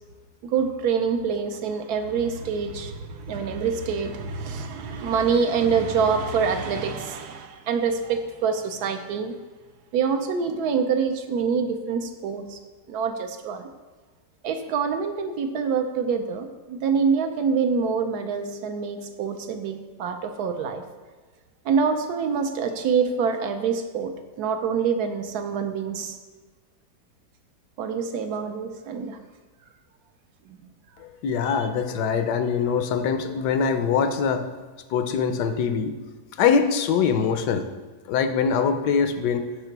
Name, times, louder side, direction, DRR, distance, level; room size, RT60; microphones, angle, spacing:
voice 1, 0.4-9.3 9.9-12.6 12.9-13.7 14.4-20.8 21.6-26.2 27.8-29.2 30.5-30.7 31.4-31.7, right 6 dB, 75° right, 7 dB, 1.1 m, -26 dB
voice 2, 31.0-34.5 34.9-35.9 36.4-37.7 38.1-39.5, left 6 dB, 80° left, 8 dB, 1.3 m, -23 dB
6.9 x 5.8 x 4.6 m, 1.3 s
omnidirectional pair, 1.8 m